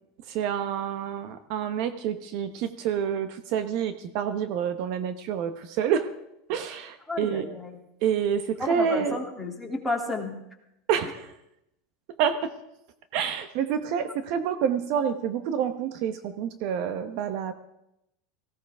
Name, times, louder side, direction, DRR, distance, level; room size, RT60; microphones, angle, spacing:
voice 1, 0.3-6.1 6.5-7.4 8.0-9.2 10.9-11.3 12.2-12.5 13.1-17.5, right 8 dB, 55° right, 9 dB, 1.0 m, -28 dB
voice 2, 7.1-7.8 8.6-10.3, left 3 dB, 5° left, -1 dB, 2.7 m, -31 dB
18.0 x 16.5 x 3.5 m, 0.82 s
supercardioid pair, 145°, 0 cm